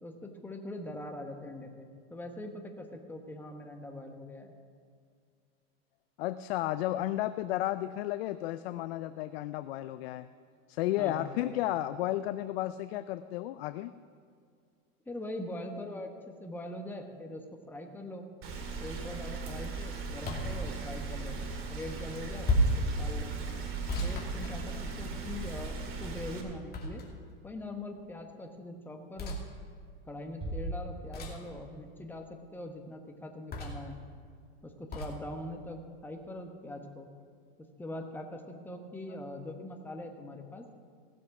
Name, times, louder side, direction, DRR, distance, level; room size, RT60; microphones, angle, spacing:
voice 1, 0.0-4.5 11.0-11.7 15.1-17.4 17.7-18.2 18.8-21.4 21.7-22.5 22.7-23.3 24.0-27.0 27.4-29.4 30.1-34.0 34.6-37.1 37.8-40.6, left 1 dB, 5° left, 3 dB, 1.1 m, -42 dB
voice 2, 6.2-10.3 10.7-13.9, left 14 dB, 75° left, 12 dB, 0.5 m, -33 dB
Rain, 18.4-26.4, right 4 dB, 40° right, 2.3 m, -38 dB
sound 1, 20.3-20.6 22.4-22.9 23.9-25.1 26.7-27.3 29.2-29.4 31.1-31.5 33.5-33.9 34.9-35.1, equal, 30° left, 2.5 m, -31 dB
Bass drum, 30.4-31.8, right 1 dB, 20° right, 2.6 m, -39 dB
16.5 x 7.4 x 5.9 m, 2.2 s
supercardioid pair, 125°, 31 cm